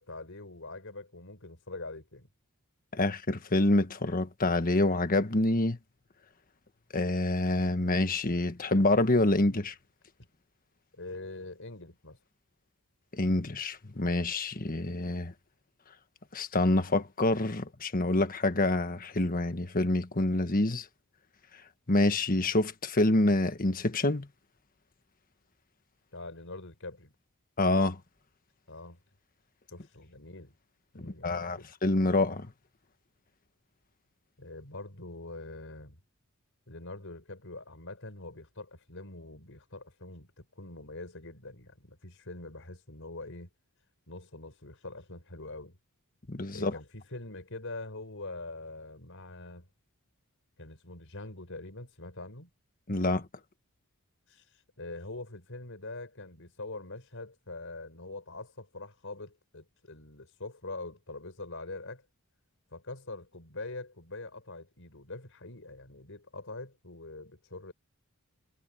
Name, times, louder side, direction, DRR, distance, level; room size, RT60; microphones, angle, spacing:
voice 1, 0.0-2.3 10.9-12.2 26.1-27.1 28.7-29.0 29.7-30.5 30.9-31.7 34.4-36.0 36.7-43.5 44.1-45.8 46.5-49.7 50.6-52.5 54.3-62.0 62.7-67.7, left 2 dB, 60° left, 6.0 m, -44 dB
voice 2, 2.9-5.8 6.9-9.7 13.1-15.3 16.3-20.8 21.9-24.3 27.6-28.0 31.2-32.5 46.3-46.7 52.9-53.2, left 2 dB, 40° left, 1.4 m, -27 dB
head